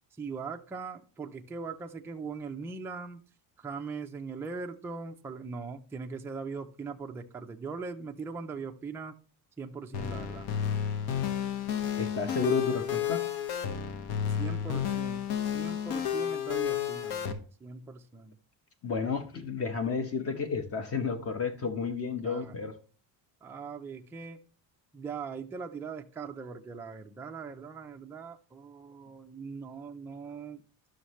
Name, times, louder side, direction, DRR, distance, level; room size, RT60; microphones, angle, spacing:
voice 1, 0.2-3.2 3.6-9.2 9.6-10.5 14.3-15.2 15.5-18.4 22.2-22.5 23.4-24.4 24.9-30.6, right 5 dB, 5° right, 0.3 m, -40 dB
sound 1, 9.9-17.3, left 8 dB, 65° left, 1.1 m, -31 dB
voice 2, 12.0-13.3 13.9-14.1 18.8-22.7, left 4 dB, 35° left, 0.9 m, -32 dB
11.0 x 6.4 x 3.1 m
cardioid pair, 155°, 42 cm